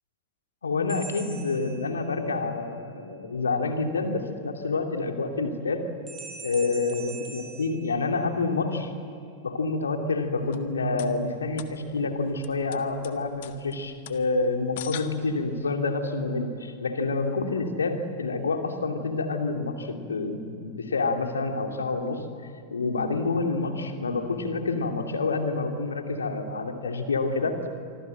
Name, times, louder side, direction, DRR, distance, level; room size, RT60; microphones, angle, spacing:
voice 1, 0.6-5.8 6.4-8.9 9.4-22.2 22.7-27.6, left 3 dB, 75° left, 5 dB, 2.7 m, -28 dB
sound 1, 0.9-2.4 6.1-8.6, right 3 dB, 15° right, 6.5 m, -43 dB
sound 2, 10.3-15.7, left 13 dB, 55° left, 1.4 m, -44 dB
25.5 x 25.0 x 8.0 m, 2.4 s
figure-of-eight pair, 90°, 0 cm